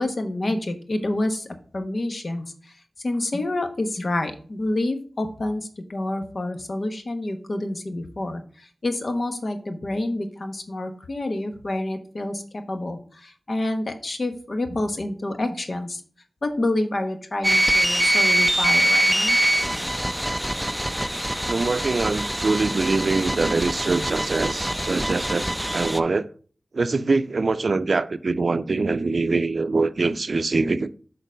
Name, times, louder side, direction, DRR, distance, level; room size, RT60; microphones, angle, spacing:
voice 1, 0.0-1.5 1.7-2.7 3.0-16.0 16.4-19.4, left 1 dB, 60° left, 1.1 m, -28 dB
sound 1, 17.4-26.0, right 1 dB, 5° right, 0.5 m, -23 dB
voice 2, 21.5-26.3 26.7-30.9, right 3 dB, 70° right, 0.4 m, -23 dB
6.7 x 4.0 x 5.1 m
wide cardioid pair, 50°, 0 cm